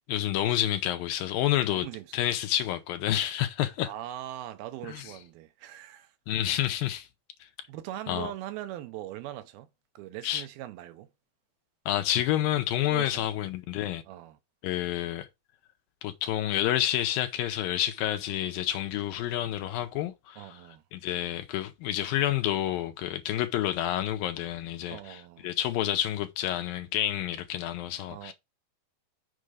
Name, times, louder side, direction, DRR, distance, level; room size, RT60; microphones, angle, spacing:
voice 1, 0.1-1.9 2.1-3.9 4.9-5.0 6.3-7.1 8.1-8.3 10.2-10.4 11.9-14.0 14.6-15.3 16.0-20.6 20.9-25.2 25.4-28.3, left 12 dB, 75° left, 2.4 m, -29 dB
voice 2, 1.7-2.2 3.8-6.1 7.7-9.7 10.0-11.1 12.9-13.3 14.1-14.4 20.4-20.8 24.9-25.5 28.1-28.3, right 13 dB, 85° right, 2.6 m, -41 dB
6.6 x 5.2 x 4.9 m
omnidirectional pair, 4.4 m